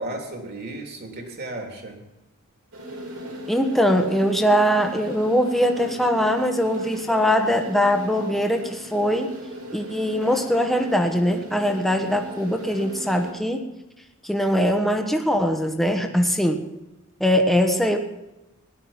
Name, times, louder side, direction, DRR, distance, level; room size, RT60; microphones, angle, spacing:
voice 1, 0.0-2.0, right 1 dB, 50° right, 3 dB, 3.2 m, -34 dB
sound 1, 2.7-13.3, equal, 75° right, 4.9 m, -37 dB
voice 2, 3.5-9.3 9.7-13.7 14.2-16.7 17.2-18.0, equal, ahead, 4 dB, 1.3 m, -21 dB
17.5 x 11.5 x 5.8 m, 0.96 s
head